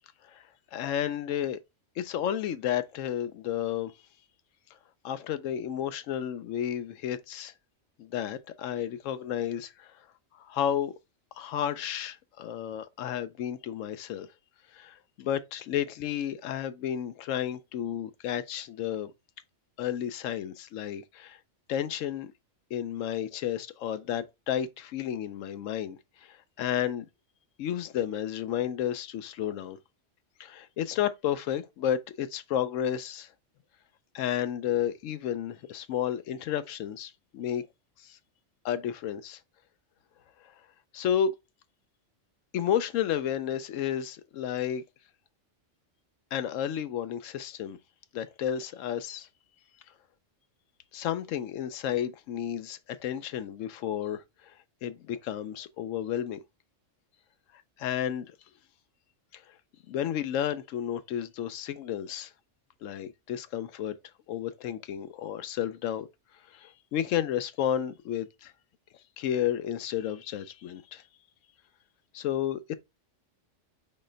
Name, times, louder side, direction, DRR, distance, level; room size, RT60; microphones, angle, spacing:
voice 1, 0.2-1.6 2.0-3.9 5.0-7.5 8.0-10.0 10.3-10.9 11.4-14.3 14.7-19.1 19.8-21.4 21.7-22.3 22.7-27.1 27.6-29.8 30.4-33.3 34.1-37.7 38.0-38.2 38.6-39.4 40.4-40.5 40.9-41.3 42.5-44.8 46.3-47.8 48.1-49.3 50.9-56.4 57.8-58.4 59.3-59.4 59.9-62.3 62.8-64.0 64.3-66.1 66.5-68.5 69.2-71.0 72.1-72.7, left 10 dB, 85° left, 1.0 m, -32 dB
4.2 x 3.2 x 3.8 m
omnidirectional pair, 1.3 m